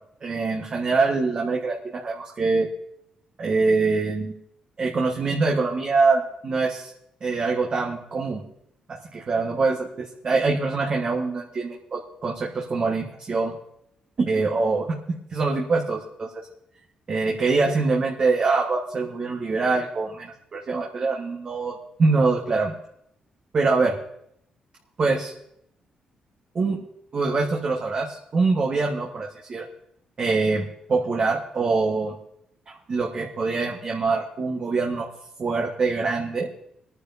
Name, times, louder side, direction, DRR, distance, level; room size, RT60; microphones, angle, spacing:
voice 1, 0.2-2.7 3.4-4.3 4.8-6.9 7.2-8.4 8.9-13.5 14.2-15.0 15.3-16.3 17.1-22.7 23.5-24.0 25.0-25.3 26.5-26.8 27.1-29.6 30.2-30.6 30.9-32.1 32.7-35.0 35.4-36.5, right 3 dB, 45° right, 0 dB, 1.5 m, -24 dB
26.0 x 9.9 x 2.8 m, 0.75 s
cardioid pair, 80°, 2 cm